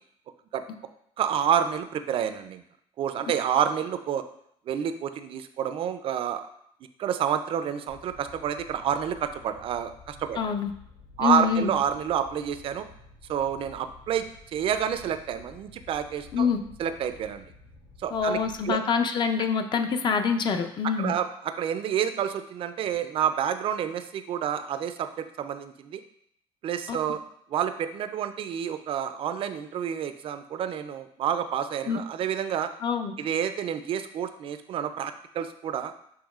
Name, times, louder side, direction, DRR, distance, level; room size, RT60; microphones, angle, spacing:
voice 1, 1.2-2.6 3.0-4.2 4.7-6.5 7.0-10.4 11.2-12.9 13.3-14.3 14.5-16.5 16.8-17.5 18.0-18.4 18.6-18.8 21.0-25.1 25.4-26.0 26.6-27.2 27.5-32.7 33.2-35.9, right 9 dB, 50° right, 10 dB, 0.4 m, -29 dB
Fire, 7.9-18.7, left 3 dB, 90° left, 1.1 m, -51 dB
voice 2, 10.4-10.7 11.2-11.7 16.3-16.6 18.1-21.1 26.9-27.0 31.9-32.0 32.8-33.1, left 6 dB, 40° left, 7 dB, 0.5 m, -25 dB
7.1 x 3.0 x 2.4 m, 0.72 s
cardioid pair, 115°, 12 cm